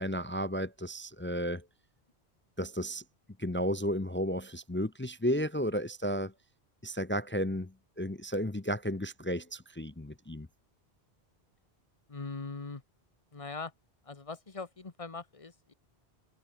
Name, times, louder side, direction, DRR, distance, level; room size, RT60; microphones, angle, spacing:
voice 1, 0.0-1.7 2.6-3.0 3.4-6.3 6.8-10.5, equal, 15° left, 0.5 m, -33 dB
voice 2, 12.1-12.8 13.3-13.7 14.0-15.7, left 4 dB, 30° left, 1.4 m, -41 dB
omnidirectional pair, 1.1 m